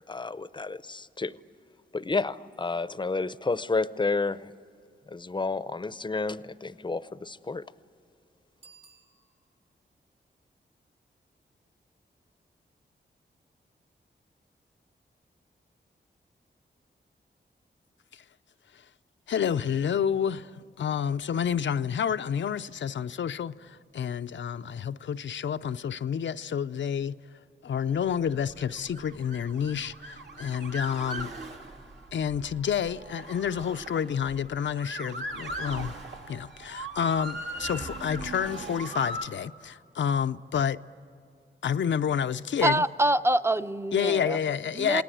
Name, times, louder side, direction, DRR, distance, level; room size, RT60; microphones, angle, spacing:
voice 1, 0.1-1.4 1.9-4.5 5.1-7.6, left 3 dB, 25° left, 0.6 m, -30 dB
Bicycle bell, 8.5-9.8, right 5 dB, 85° right, 5.3 m, -57 dB
voice 2, 19.3-27.2 27.6-31.3 32.1-35.9 36.3-40.8 41.6-42.8 43.9-45.0, left 8 dB, 80° left, 0.5 m, -29 dB
Motor vehicle (road) / Siren, 28.1-39.2, right 2 dB, 70° right, 2.4 m, -39 dB
voice 3, 42.6-44.4 44.7-45.0, right 1 dB, 15° right, 0.6 m, -25 dB
28.0 x 19.5 x 9.1 m
wide cardioid pair, 95°, 19 cm